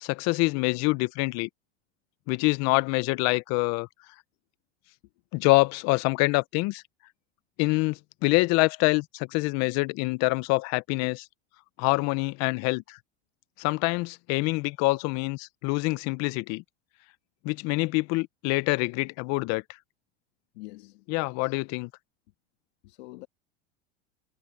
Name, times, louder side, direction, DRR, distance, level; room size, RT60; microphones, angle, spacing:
voice 1, 0.0-1.5 2.3-3.9 5.3-6.8 7.6-11.3 11.8-13.0 13.6-16.6 17.4-19.6 21.1-21.9, left 25 dB, 55° left, 0.7 m, -25 dB
voice 2, 20.5-21.1 22.8-23.3, left 22 dB, 75° left, 1.6 m, -45 dB
supercardioid pair, 125°, 32 cm